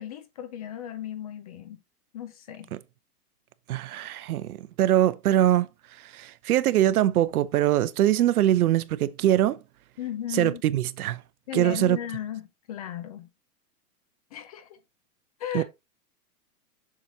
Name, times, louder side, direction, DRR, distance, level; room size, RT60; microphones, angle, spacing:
voice 1, 0.0-1.8 2.1-2.7 10.0-10.6 11.5-13.3 14.3-14.8 15.4-15.6, left 10 dB, 25° left, 0.4 m, -35 dB
voice 2, 3.7-5.7 6.1-9.6 10.3-11.2 11.5-12.0 15.5-15.6, right 12 dB, 65° right, 0.8 m, -23 dB
7.2 x 6.0 x 2.8 m
hypercardioid pair, 145°, 46 cm